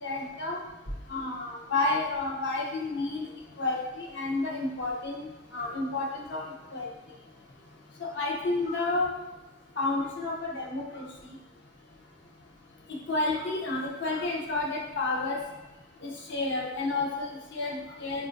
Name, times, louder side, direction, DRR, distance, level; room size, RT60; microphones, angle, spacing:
voice 1, 0.0-0.6 1.1-3.2 3.6-5.3 5.5-6.4 6.7-6.9 8.0-9.1 9.8-11.0 13.1-15.4 16.0-18.3, left 3 dB, 65° left, -2 dB, 0.6 m, -30 dB
3.6 x 2.4 x 2.5 m, 1.1 s
head